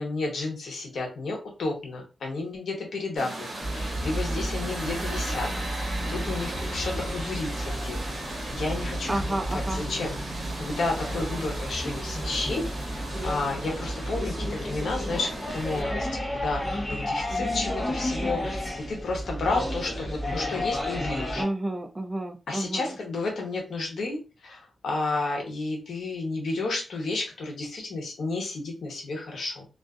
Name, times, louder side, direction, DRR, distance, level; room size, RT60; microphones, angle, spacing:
voice 1, 0.0-5.5 5.8-8.0 8.5-9.2 9.5-21.4 22.5-24.2 24.4-29.7, left 3 dB, 80° left, 0 dB, 0.8 m, -32 dB
sound 1, 3.2-15.8, right 1 dB, 60° right, 1.1 m, -37 dB
sound 2, 3.6-21.4, equal, 30° left, 0.8 m, -32 dB
voice 2, 9.1-9.8 21.4-23.0, right 1 dB, 20° right, 5 dB, 0.3 m, -30 dB
2.4 x 2.4 x 2.3 m, 0.32 s
wide cardioid pair, 180°, 0 cm